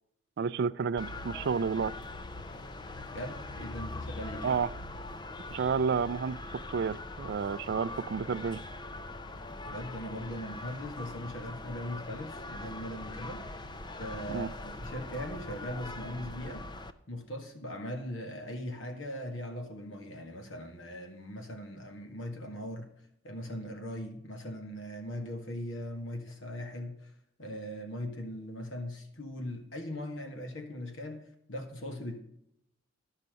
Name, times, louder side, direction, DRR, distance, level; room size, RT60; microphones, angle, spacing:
voice 1, 0.4-1.9 4.4-4.7 5.5-6.4 6.7-8.6 14.3-14.5, right 6 dB, 60° right, 18 dB, 0.4 m, -30 dB
sound 1, 1.0-16.9, left 2 dB, 25° left, 0.5 m, -42 dB
voice 2, 3.1-4.6 9.6-13.7 14.0-16.7 17.1-22.9 23.2-27.1 27.4-32.2, equal, 85° left, 4 dB, 1.9 m, -40 dB
12.0 x 5.7 x 5.1 m, 0.79 s
head